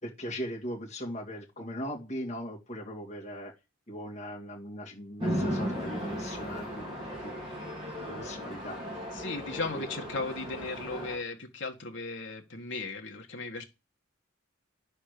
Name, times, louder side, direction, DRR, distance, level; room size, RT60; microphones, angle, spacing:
voice 1, 0.0-3.5 3.9-7.0 7.2-7.3 8.0-8.8 9.7-9.8, equal, 35° left, 2.7 m, -39 dB
Chatter / Traffic noise roadway noise / Train, 5.2-11.2, equal, 25° right, 3.9 m, -36 dB
voice 2, 9.1-13.6, left 3 dB, 65° left, 1.9 m, -36 dB
10.5 x 4.4 x 6.8 m
head